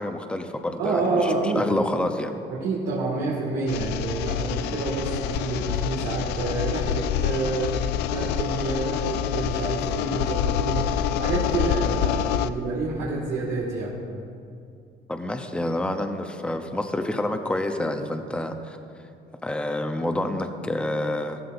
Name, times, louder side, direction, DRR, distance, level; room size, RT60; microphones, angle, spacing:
voice 1, 0.0-2.3 15.1-18.8 19.4-21.4, left 1 dB, 5° left, 5 dB, 0.8 m, -28 dB
voice 2, 0.8-1.8 2.5-7.7 8.1-14.0, right 3 dB, 90° right, -6 dB, 2.0 m, -28 dB
sound 1, 3.7-12.5, left 10 dB, 85° left, 0.4 m, -27 dB
14.5 x 13.5 x 2.6 m, 2.5 s
cardioid pair, 110°, 17 cm